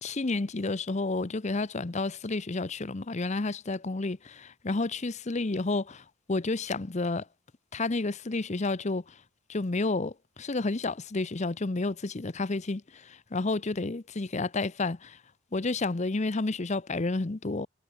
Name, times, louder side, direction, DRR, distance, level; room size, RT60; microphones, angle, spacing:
voice 1, 0.0-7.2 7.7-9.0 9.5-10.1 10.4-15.2 15.5-17.7, left 3 dB, 35° left, 0.7 m, -30 dB
head